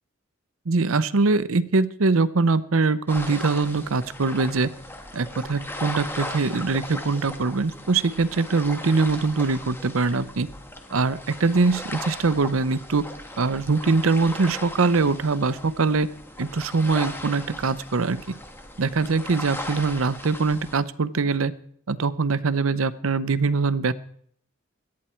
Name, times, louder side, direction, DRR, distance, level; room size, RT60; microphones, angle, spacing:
voice 1, 0.7-4.7 5.1-10.5 10.9-13.0 13.4-16.1 16.4-18.3 18.8-21.5 21.9-23.9, right 4 dB, 85° right, 15 dB, 0.7 m, -23 dB
sound 1, 3.1-20.8, left 1 dB, 10° left, 1.7 m, -38 dB
17.5 x 12.5 x 4.5 m, 0.63 s
head